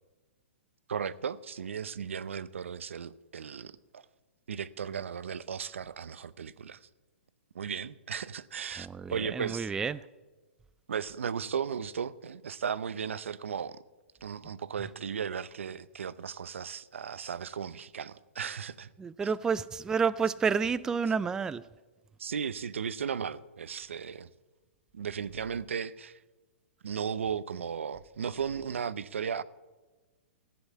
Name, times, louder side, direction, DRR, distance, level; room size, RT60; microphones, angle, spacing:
voice 1, 0.9-4.0 4.5-6.9 7.5-9.7 10.9-13.8 14.2-18.9 19.2-19.3 22.2-24.3 24.9-26.2 26.8-29.4, right 7 dB, 80° right, 0.6 m, -36 dB
voice 2, 8.8-10.0 19.0-21.6, right 5 dB, 10° right, 0.3 m, -30 dB
14.5 x 7.9 x 8.3 m
hypercardioid pair, 130°, 7 cm